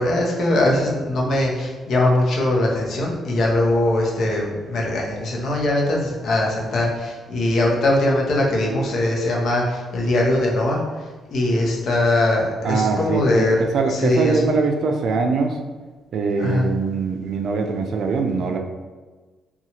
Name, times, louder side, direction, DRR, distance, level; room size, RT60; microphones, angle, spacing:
voice 1, 0.0-10.8 11.3-13.6 13.9-14.4 16.4-16.7, left 1 dB, 65° left, -2 dB, 0.7 m, -21 dB
voice 2, 12.6-15.6 16.1-18.6, right 4 dB, 65° right, 4 dB, 0.3 m, -22 dB
2.7 x 2.3 x 2.8 m, 1.3 s
cardioid pair, 90°, 0 cm